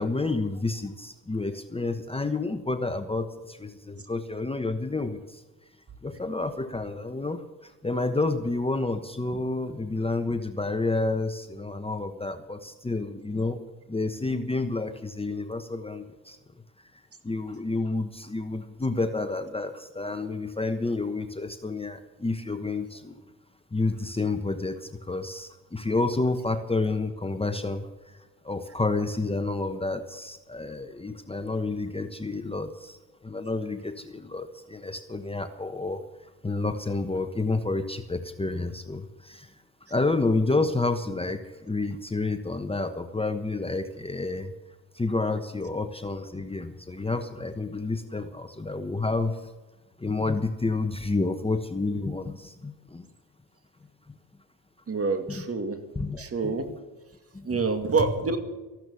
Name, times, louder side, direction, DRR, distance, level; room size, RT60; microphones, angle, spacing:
voice 1, 0.0-5.4 6.0-13.6 13.9-16.4 17.2-23.1 23.7-28.2 28.4-39.6 39.9-44.5 44.9-49.5 50.0-53.0 54.1-54.2 55.3-55.4 55.9-56.5 57.3-57.6, left 3 dB, 15° left, 8 dB, 1.1 m, -30 dB
voice 2, 54.9-55.8 56.2-56.7 57.4-58.4, right 4 dB, 35° right, 7 dB, 2.2 m, -26 dB
14.5 x 12.0 x 7.0 m, 1.2 s
supercardioid pair, 60°, 41 cm